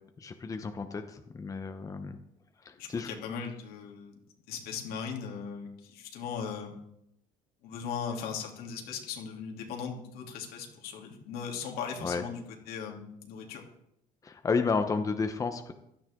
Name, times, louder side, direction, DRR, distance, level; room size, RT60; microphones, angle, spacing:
voice 1, 0.2-2.2 2.6-3.1 12.0-12.2 14.2-15.7, left 4 dB, 20° left, 7 dB, 0.9 m, -32 dB
voice 2, 2.8-4.2 4.5-6.8 7.6-13.6, left 6 dB, 75° left, 0 dB, 3.1 m, -38 dB
16.0 x 12.5 x 3.8 m, 0.80 s
cardioid pair, 135°, 16 cm